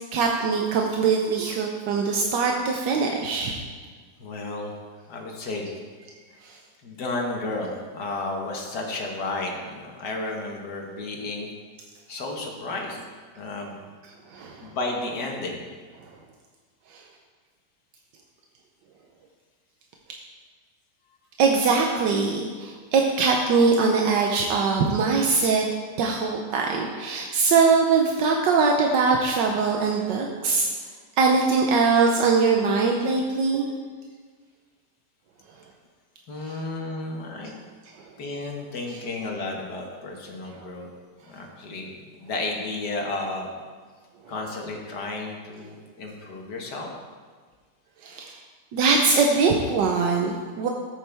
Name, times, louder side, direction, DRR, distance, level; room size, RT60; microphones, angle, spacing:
voice 1, 0.1-3.6 6.4-6.6 14.3-14.7 21.4-25.6 26.0-30.7 31.2-33.7 36.4-36.6 48.0-48.4 48.7-50.7, right 4 dB, 85° right, 1 dB, 1.5 m, -22 dB
voice 2, 4.2-4.8 5.1-5.7 6.8-11.5 12.1-13.0 13.4-13.8 14.6-15.6 36.3-37.7 38.2-40.9 41.3-43.5 44.3-46.9, left 2 dB, 70° left, 1 dB, 1.9 m, -32 dB
13.5 x 8.5 x 3.4 m, 1.5 s
omnidirectional pair, 1.8 m